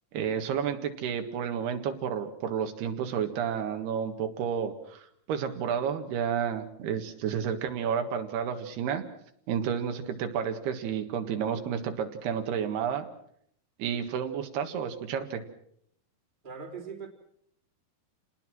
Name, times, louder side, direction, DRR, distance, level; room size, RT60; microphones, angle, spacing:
voice 1, 0.1-9.0 9.5-13.1 13.8-15.4, right 7 dB, 85° right, 6 dB, 3.8 m, -31 dB
voice 2, 16.4-17.1, right 5 dB, 15° right, 2 dB, 2.8 m, -40 dB
29.5 x 19.5 x 6.1 m, 0.69 s
omnidirectional pair, 4.5 m